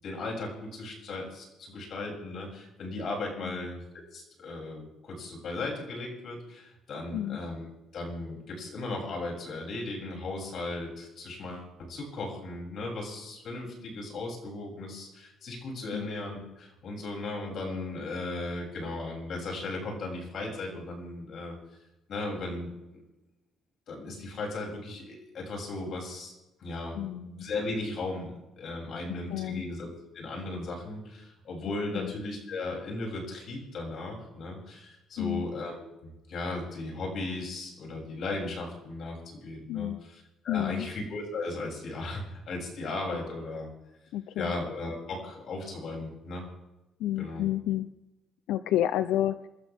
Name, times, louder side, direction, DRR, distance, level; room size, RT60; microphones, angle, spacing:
voice 1, 0.0-3.8 4.1-7.7 7.9-21.6 22.1-22.7 23.9-26.3 26.6-29.9 30.1-43.7 44.4-46.4 47.2-47.5, left 2 dB, 55° left, 0 dB, 7.1 m, -36 dB
voice 2, 26.9-27.3 29.3-29.6 31.9-32.1 35.2-35.5 39.7-40.0 40.5-40.9 44.1-44.5 47.0-47.9 48.5-49.4, left 12 dB, 85° left, 12 dB, 0.6 m, -30 dB
27.0 x 13.0 x 3.6 m, 0.96 s
cardioid pair, 105°, 0 cm